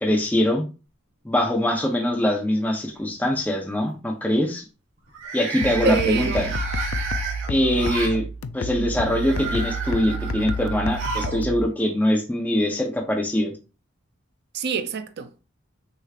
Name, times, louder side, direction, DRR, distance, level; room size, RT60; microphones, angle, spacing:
voice 1, 0.0-0.6 1.2-4.6 5.3-6.5 7.5-8.2 8.5-13.5, left 1 dB, 10° left, 0.8 m, -23 dB
sound 1, 1.6-2.2 2.6-3.0 5.1-8.2 9.0-11.4 11.7-11.8 12.9-13.0, right 4 dB, 70° right, 1.4 m, -32 dB
sound 2, 5.6-11.6, right 1 dB, 85° left, 0.4 m, -30 dB
voice 2, 5.8-6.5 14.5-15.4, right 5 dB, 55° right, 0.4 m, -26 dB
6.5 x 3.0 x 2.4 m
head